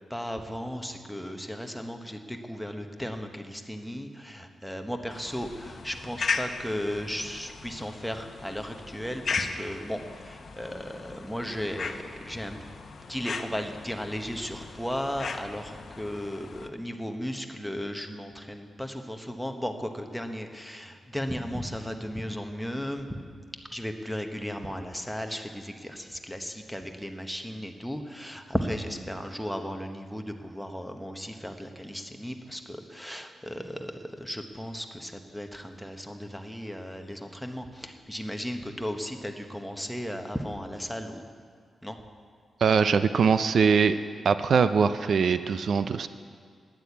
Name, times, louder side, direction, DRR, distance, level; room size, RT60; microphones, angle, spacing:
voice 1, 0.1-12.6 13.1-23.2 23.7-41.2 41.8-42.0, equal, ahead, 5 dB, 1.1 m, -35 dB
sound 1, 5.1-16.7, left 5 dB, 50° left, 0.9 m, -37 dB
voice 2, 42.6-44.0 44.2-46.1, right 6 dB, 65° right, 12 dB, 0.4 m, -22 dB
12.5 x 10.0 x 8.4 m, 2.1 s
cardioid pair, 105°, 0 cm